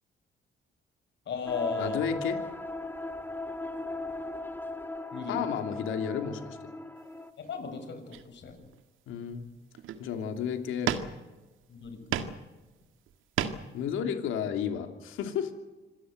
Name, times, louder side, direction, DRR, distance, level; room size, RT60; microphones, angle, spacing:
voice 1, 1.2-2.0 5.1-5.7 7.4-8.7 11.7-12.2, left 5 dB, 65° left, 7 dB, 6.6 m, -36 dB
sound 1, 1.5-7.3, left 2 dB, 10° left, 1.9 m, -37 dB
voice 2, 1.8-2.4 5.3-6.7 9.1-9.4 10.0-10.9 13.7-15.5, left 8 dB, 90° left, 6 dB, 3.0 m, -32 dB
sound 2, 7.4-7.6 8.1-8.8 9.3-9.4 9.8-10.2 10.9-11.5 11.8-12.5 12.8-13.8, right 9 dB, 85° right, 1.8 m, -34 dB
26.5 x 17.5 x 8.0 m, 1.2 s
cardioid pair, 90°, 20 cm